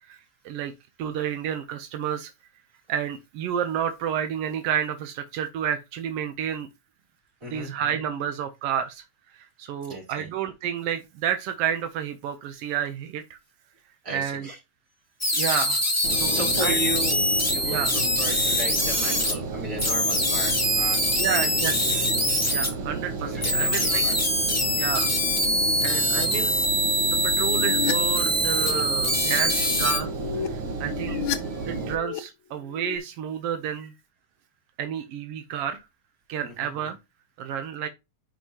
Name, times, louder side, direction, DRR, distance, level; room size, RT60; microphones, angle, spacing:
voice 1, 1.0-2.3 2.9-6.7 7.5-9.0 9.3-13.4 14.1-14.5 15.3-15.8 16.1-16.8 17.6-17.9 21.2-21.7 22.5-24.0 24.8-25.1 25.8-26.5 27.2-30.1 30.4-31.2 31.7-33.9 34.8-35.8 36.3-37.0 37.4-37.9, right 9 dB, 75° right, 1.4 m, -30 dB
voice 2, 7.4-7.7 9.8-10.3 14.0-14.6 15.2-15.4 16.3-17.2 17.5-22.3 23.2-24.2 29.5-29.7 31.1-31.9 33.8-33.9 36.4-36.7, equal, 25° right, 4.0 m, -36 dB
sound 1, 15.2-19.3 19.8-22.7 23.4-30.0, left 1 dB, 10° left, 0.9 m, -24 dB
Engine, 16.0-31.9, right 4 dB, 55° right, 1.8 m, -33 dB
sound 2, 27.3-27.9 28.3-28.8 29.8-31.4 31.6-32.2 32.5-33.0, left 10 dB, 75° left, 1.2 m, -33 dB
10.0 x 5.3 x 2.8 m
omnidirectional pair, 3.4 m